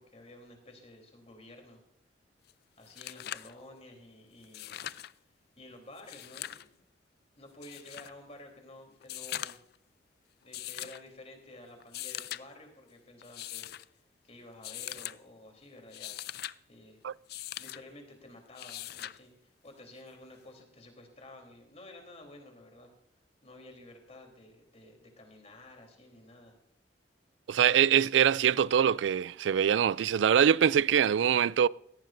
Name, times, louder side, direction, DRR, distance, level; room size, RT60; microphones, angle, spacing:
voice 1, 0.0-1.8 2.8-4.9 5.6-6.9 7.4-9.6 10.4-16.2 16.7-17.0 17.6-22.9 23.4-26.6, left 1 dB, 35° left, 3.5 m, -52 dB
sound 1, 2.5-2.6 2.8-3.5 4.4-5.1 6.0-6.7 7.6-8.1 9.0-9.7 10.5-11.0 11.8-12.4 13.2-13.8 14.6-15.2 15.8-16.6 17.3-17.8 18.6-19.2 20.6-20.7, left 13 dB, 60° left, 0.4 m, -41 dB
voice 2, 27.5-31.7, right 8 dB, 85° right, 0.3 m, -24 dB
18.0 x 14.5 x 2.6 m
head